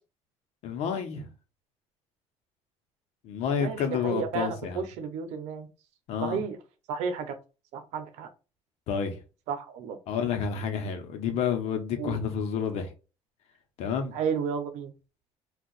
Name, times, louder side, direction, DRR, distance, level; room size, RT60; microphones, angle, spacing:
voice 1, 0.6-1.3 3.2-4.9 6.1-6.4 8.9-9.2 10.1-12.9 13.8-14.2, left 7 dB, 70° left, 0.9 m, -30 dB
voice 2, 3.6-5.7 6.2-6.6 6.9-7.3 7.7-8.3 9.5-10.0 12.0-12.2 14.1-14.9, right 6 dB, 85° right, 0.7 m, -32 dB
2.7 x 2.4 x 3.9 m
cardioid pair, 130°, 11 cm